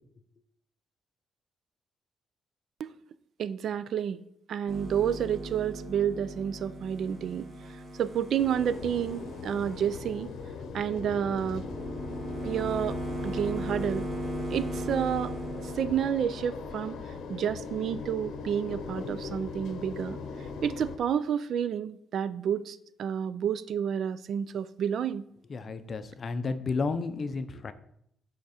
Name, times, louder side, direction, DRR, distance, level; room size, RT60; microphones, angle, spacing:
voice 1, 3.4-4.2 4.5-7.5 8.0-10.3 10.7-11.7 12.4-13.0 13.2-14.1 14.5-15.3 15.6-17.0 17.3-20.2 20.6-25.3, right 8 dB, 55° right, 15 dB, 0.3 m, -30 dB
sound 1, 4.7-16.0, right 1 dB, 35° right, 1.5 m, -38 dB
sound 2, 8.4-21.0, left 5 dB, 70° left, 0.7 m, -40 dB
voice 2, 25.5-27.7, left 4 dB, 35° left, 11 dB, 0.5 m, -32 dB
10.0 x 3.5 x 4.3 m, 0.71 s
cardioid pair, 155°, 0 cm